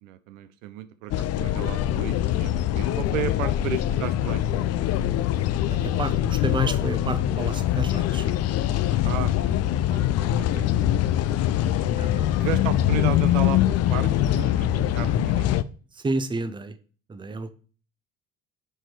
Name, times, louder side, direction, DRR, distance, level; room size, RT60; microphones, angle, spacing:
voice 1, 0.0-4.4 9.0-9.3 9.9-11.0 12.4-15.6, right 11 dB, 65° right, 12 dB, 0.6 m, -34 dB
sound 1, 1.1-15.6, left 12 dB, 40° left, 0.5 m, -23 dB
voice 2, 5.6-8.3 11.5-12.4 15.9-16.8 17.1-17.5, right 3 dB, 10° right, 11 dB, 0.7 m, -31 dB
6.4 x 4.5 x 4.7 m, 0.39 s
figure-of-eight pair, 50°, 41 cm